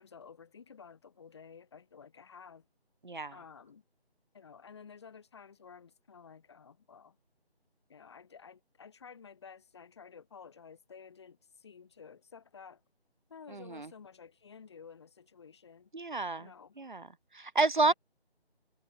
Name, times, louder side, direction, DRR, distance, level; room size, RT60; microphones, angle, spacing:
voice 1, 0.0-2.7 3.3-3.8 4.3-7.2 7.9-12.8 13.3-15.9 16.4-16.8 17.8-17.9, left 6 dB, 25° left, 7.5 m, -52 dB
voice 2, 3.0-3.3 13.5-13.9 15.9-16.5 16.8-17.1 17.3-17.9, right 3 dB, 50° right, 2.1 m, -30 dB
figure-of-eight pair, 160°, 32 cm